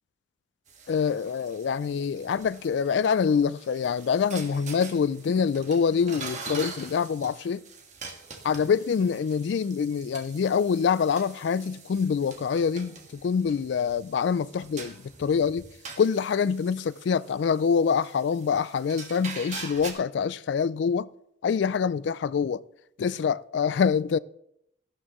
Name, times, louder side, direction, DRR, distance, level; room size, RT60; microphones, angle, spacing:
sound 1, 0.7-19.9, right 4 dB, 40° right, 1.6 m, -44 dB
voice 1, 0.9-7.6 8.4-15.7 16.0-21.1 21.4-22.6 23.0-24.2, left 6 dB, 65° left, 0.3 m, -25 dB
13.5 x 12.0 x 3.0 m
head